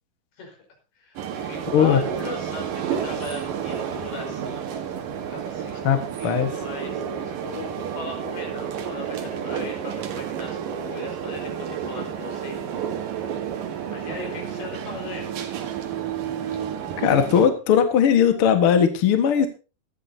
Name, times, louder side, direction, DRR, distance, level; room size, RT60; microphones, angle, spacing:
voice 1, 1.0-4.9 5.3-12.7 13.9-15.5 16.5-16.6, left 4 dB, 75° left, 2 dB, 6.8 m, -38 dB
sound 1, 1.2-17.5, right 8 dB, 65° right, 3.0 m, -31 dB
voice 2, 5.8-6.5 17.0-19.5, left 8 dB, 50° left, 7 dB, 1.7 m, -18 dB
18.0 x 13.5 x 2.8 m, 0.33 s
omnidirectional pair, 4.6 m